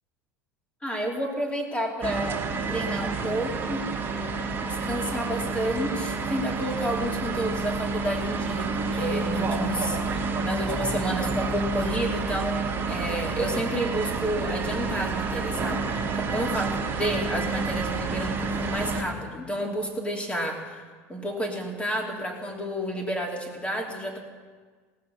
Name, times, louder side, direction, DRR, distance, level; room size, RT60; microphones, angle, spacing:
voice 1, 0.8-3.9 4.6-16.0 16.3-20.8 21.1-24.2, equal, 15° left, 1 dB, 2.9 m, -30 dB
sound 1, 2.0-19.0, right 4 dB, 25° right, 2.6 m, -29 dB
18.0 x 6.7 x 7.0 m, 1.5 s
hypercardioid pair, 90°, 8 cm